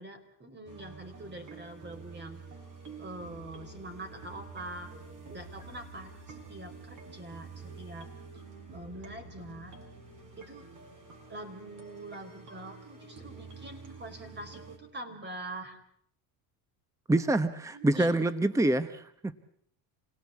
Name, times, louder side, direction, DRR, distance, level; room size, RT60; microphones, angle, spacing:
voice 1, 0.0-2.4 3.0-4.9 5.3-8.1 8.7-9.8 10.4-10.7 11.3-15.8 17.7-18.3, right 1 dB, 25° right, 7 dB, 4.8 m, -44 dB
sound 1, 0.7-14.8, right 4 dB, 40° right, 7.0 m, -48 dB
voice 2, 17.1-19.3, right 2 dB, 5° right, 13 dB, 1.0 m, -26 dB
28.0 x 18.5 x 8.5 m, 0.68 s
cardioid pair, 120°, 45 cm